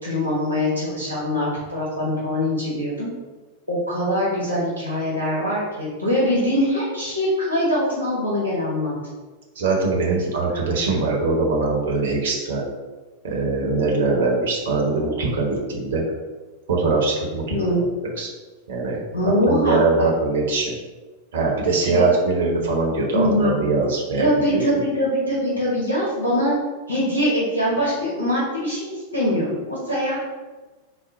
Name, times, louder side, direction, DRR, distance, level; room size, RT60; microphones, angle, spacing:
voice 1, 0.0-3.1 3.7-8.9 17.5-17.8 19.1-20.1 21.9-22.0 23.1-23.6 24.2-26.5 26.9-30.2, equal, 80° left, -7 dB, 1.0 m, -23 dB
voice 2, 9.6-12.6 13.2-16.0 16.7-17.4 17.7-17.9 18.2-18.3 18.7-19.0 19.5-20.8 21.3-24.8, right 3 dB, 60° right, -2 dB, 0.8 m, -22 dB
4.2 x 2.1 x 3.9 m, 1.3 s
figure-of-eight pair, 90°, 0 cm